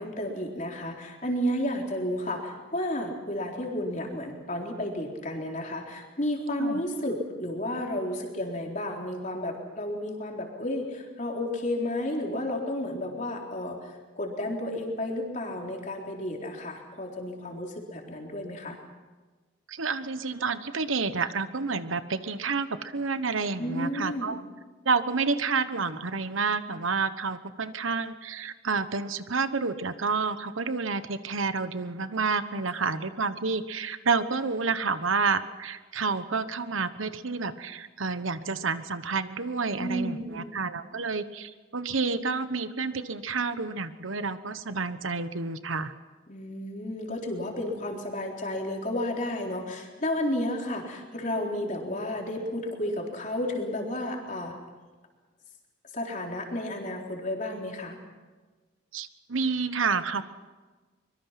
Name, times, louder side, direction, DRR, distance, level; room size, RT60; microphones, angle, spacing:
voice 1, 0.0-18.8 23.6-24.4 32.8-32.9 39.8-40.6 46.3-54.6 55.9-58.0, left 1 dB, 40° left, 1 dB, 3.9 m, -32 dB
voice 2, 19.7-24.4 24.8-45.9 58.9-60.2, right 4 dB, 80° right, 12 dB, 1.2 m, -29 dB
24.5 x 22.5 x 5.9 m, 1.3 s
head